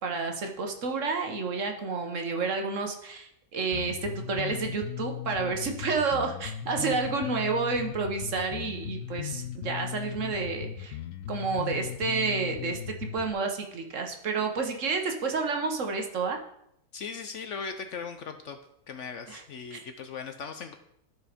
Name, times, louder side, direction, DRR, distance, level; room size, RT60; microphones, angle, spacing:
voice 1, 0.0-11.0 11.3-16.4 19.3-19.4 19.7-19.8, right 4 dB, 55° right, 4 dB, 1.4 m, -30 dB
Bass guitar, 3.7-13.3, left 10 dB, 85° left, 1.2 m, -37 dB
voice 2, 16.9-18.6 18.9-20.7, left 5 dB, 60° left, 7 dB, 0.9 m, -38 dB
12.5 x 4.6 x 5.0 m, 0.77 s
omnidirectional pair, 1.6 m